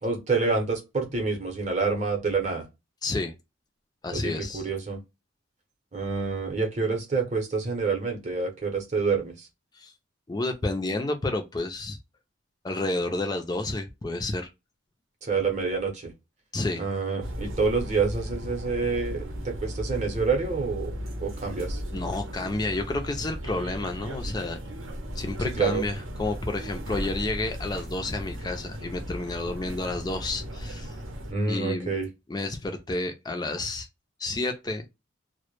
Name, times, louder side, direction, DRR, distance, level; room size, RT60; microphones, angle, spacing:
voice 1, 0.0-2.6 4.1-5.0 5.9-9.5 15.2-16.1 16.8-20.9 21.2-21.8 25.4-25.8 31.3-32.1, right 4 dB, 35° right, 0.6 m, -27 dB
voice 2, 3.0-3.3 4.0-4.7 9.7-9.9 10.3-12.0 12.6-14.5 16.5-16.8 21.9-24.6 25.2-30.9 31.5-31.9 32.3-33.9 34.2-34.9, left 2 dB, 20° left, 0.3 m, -30 dB
sound 1, 17.2-31.3, equal, 80° right, 0.6 m, -36 dB
2.0 x 2.0 x 2.9 m
head